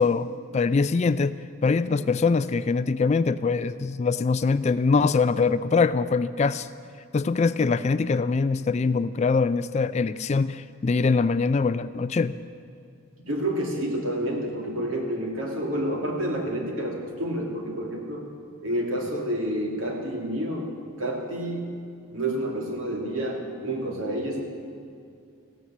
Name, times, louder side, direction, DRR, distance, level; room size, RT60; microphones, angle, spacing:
voice 1, 0.0-1.3 1.6-6.7 7.1-12.3, left 4 dB, 30° left, 15 dB, 0.3 m, -23 dB
voice 2, 13.2-18.2 18.6-20.7 21.0-21.7 22.1-24.4, right 1 dB, 65° right, 0 dB, 2.7 m, -29 dB
15.5 x 12.5 x 7.3 m, 2.4 s
head